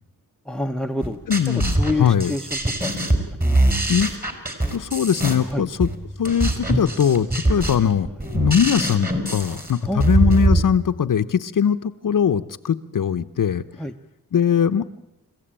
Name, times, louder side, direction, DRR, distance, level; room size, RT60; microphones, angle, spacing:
voice 1, 0.5-1.2 1.5-3.0 3.4-3.6 5.5-5.6 9.8-10.1 13.8-13.9, left 1 dB, ahead, 9 dB, 0.9 m, -27 dB
sound 1, 1.0-10.6, right 1 dB, 25° right, 4.4 m, -22 dB
voice 2, 1.3-2.3 3.9-4.1 4.7-5.9 6.2-8.1 8.3-13.6 14.3-14.8, left 8 dB, 60° left, 9 dB, 0.9 m, -21 dB
29.0 x 15.5 x 8.8 m, 0.88 s
wide cardioid pair, 100°, 36 cm